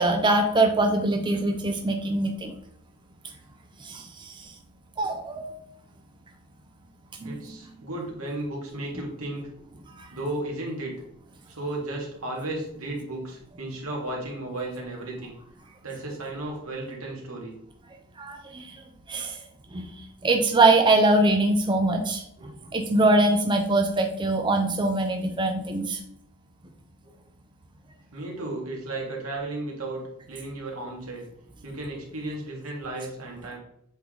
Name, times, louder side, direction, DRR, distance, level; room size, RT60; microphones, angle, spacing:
voice 1, 0.0-2.5 3.8-4.5 5.0-5.5 7.2-7.3 10.0-10.1 18.2-18.8 19.1-19.4 19.7-20.0 20.2-26.0, right 2 dB, 20° right, 3 dB, 0.5 m, -23 dB
voice 2, 7.2-9.5 10.1-10.9 11.5-15.3 15.8-17.5 28.1-30.0 30.3-31.3 31.6-33.6, right 2 dB, 85° right, -1 dB, 2.0 m, -34 dB
7.8 x 3.4 x 3.7 m, 0.72 s
head